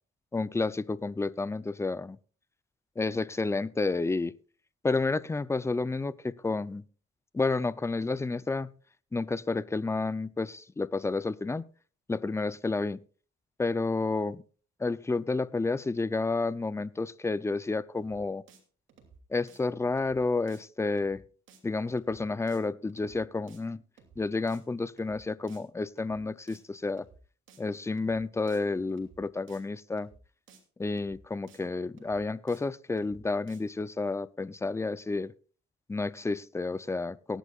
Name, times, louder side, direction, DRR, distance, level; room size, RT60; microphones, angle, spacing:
voice 1, 0.3-2.2 3.0-4.3 4.8-6.8 7.3-8.7 9.1-11.6 12.1-13.0 13.6-14.4 14.8-18.4 19.3-21.2 21.6-23.8 24.2-27.1 27.6-30.1 30.8-35.3 35.9-37.4, left 3 dB, 15° left, 0.6 m, -30 dB
sound 1, 18.0-18.2 18.5-18.6 18.9-19.2 19.5-19.6 20.0-20.2 20.5-20.6 20.9-21.2 21.5-21.6 22.0-22.2 22.5-22.6 22.9-23.2 23.5-23.6 24.0-24.2 24.5-24.6 24.9-25.2 25.5-25.6 26.0-26.2 26.5-26.6 26.9-27.2 27.5-27.6 28.0-28.2 28.5-28.6 28.9-29.2 29.5-29.6 30.0-30.2 30.5-30.6 30.9-31.2 31.5-31.6 32.0-32.2 32.5-32.6 32.9-33.2 33.5-33.6, right 6 dB, 75° right, 2.9 m, -57 dB
19.0 x 10.0 x 2.4 m
cardioid pair, 90°, 20 cm